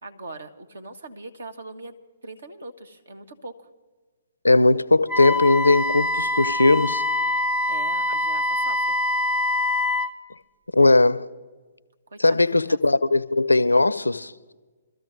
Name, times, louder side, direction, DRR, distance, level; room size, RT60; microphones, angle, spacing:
voice 1, 0.0-2.0 2.2-3.7 7.7-9.0 12.1-12.8, right 2 dB, 65° right, 1.1 m, -40 dB
voice 2, 4.4-7.0 10.7-11.3 12.2-14.3, left 2 dB, 80° left, 0.5 m, -18 dB
Wind instrument woodwind instrument, 5.1-10.1, left 2 dB, 10° right, 0.6 m, -24 dB
25.5 x 13.5 x 2.6 m
figure-of-eight pair, 125°, 0 cm